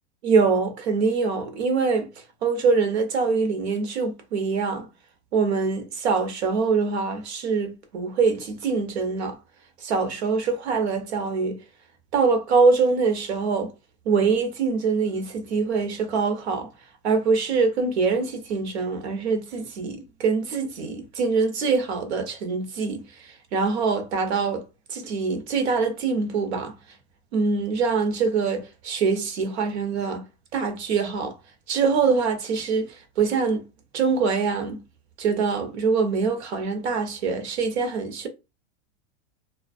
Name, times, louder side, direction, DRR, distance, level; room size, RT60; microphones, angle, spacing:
voice 1, 0.2-2.1 2.4-4.9 5.3-9.4 9.8-11.6 12.1-13.7 14.1-16.7 17.0-26.7 27.3-30.2 30.5-31.4 31.7-33.6 33.9-34.8 35.2-38.3, right 4 dB, 90° right, 0.9 m, -24 dB
2.3 x 2.3 x 2.3 m
supercardioid pair, 150°, 32 cm